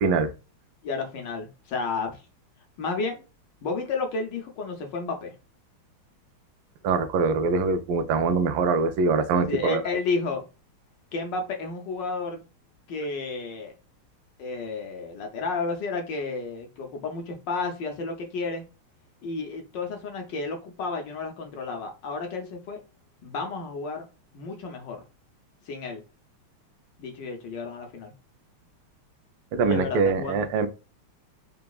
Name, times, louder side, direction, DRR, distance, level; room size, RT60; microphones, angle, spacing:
voice 1, 0.8-2.2 2.8-3.2 3.6-5.3 9.5-10.4 11.1-12.4 12.9-13.7 14.4-18.6 19.2-22.8 23.2-24.1 24.3-25.0 25.7-26.0 27.0-28.1 29.7-30.7, left 4 dB, 65° left, 1.3 m, -32 dB
voice 2, 6.8-9.8 29.5-30.7, right 4 dB, 90° right, 1.6 m, -23 dB
3.9 x 3.4 x 2.3 m
omnidirectional pair, 2.4 m